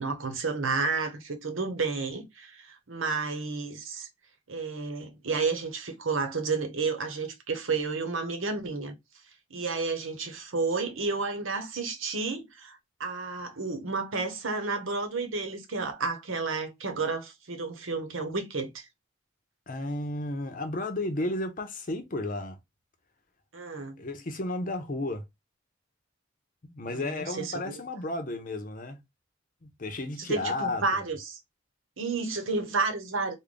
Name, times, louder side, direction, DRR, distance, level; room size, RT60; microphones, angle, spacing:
voice 1, 0.0-4.1 4.5-8.9 9.5-18.9 23.5-24.0 26.8-27.8 30.2-31.4 32.0-33.3, right 4 dB, 90° right, 1.0 m, -31 dB
voice 2, 19.7-22.6 24.0-25.2 26.6-29.0 29.6-30.8, left 2 dB, 40° left, 0.6 m, -33 dB
3.4 x 2.2 x 3.7 m
head